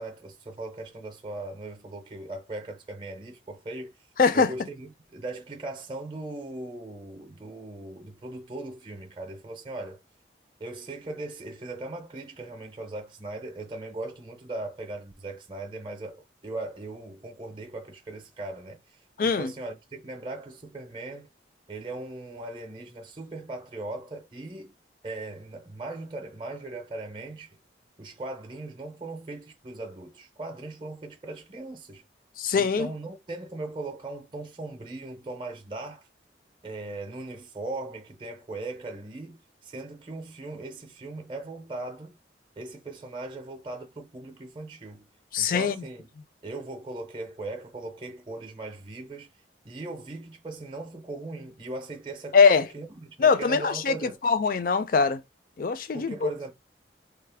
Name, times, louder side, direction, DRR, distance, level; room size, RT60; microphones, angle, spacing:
voice 1, 0.0-3.9 4.3-10.0 10.6-18.8 19.2-21.3 21.7-24.7 25.0-27.6 28.0-32.0 32.5-36.1 36.6-42.2 42.6-45.1 45.4-46.1 46.4-49.3 49.6-54.2 55.9-56.5, right 2 dB, 25° right, 0.6 m, -39 dB
voice 2, 4.2-4.5 19.2-19.5 32.4-32.9 45.3-45.8 52.3-52.7 53.2-55.2 55.6-56.3, left 5 dB, 50° left, 0.3 m, -22 dB
3.3 x 2.0 x 3.3 m
head